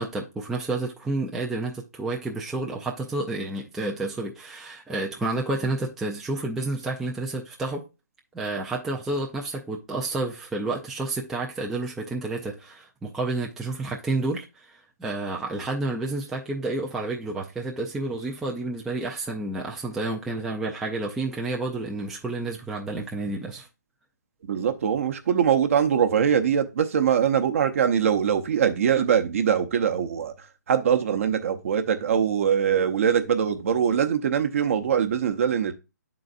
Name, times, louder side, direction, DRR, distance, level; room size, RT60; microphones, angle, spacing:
voice 1, 0.0-7.8 8.3-23.7, right 2 dB, 5° right, 0.3 m, -30 dB
voice 2, 24.5-30.3 30.7-35.7, right 8 dB, 50° right, 0.7 m, -22 dB
10.5 x 3.9 x 2.4 m
hypercardioid pair, 155°, 10 cm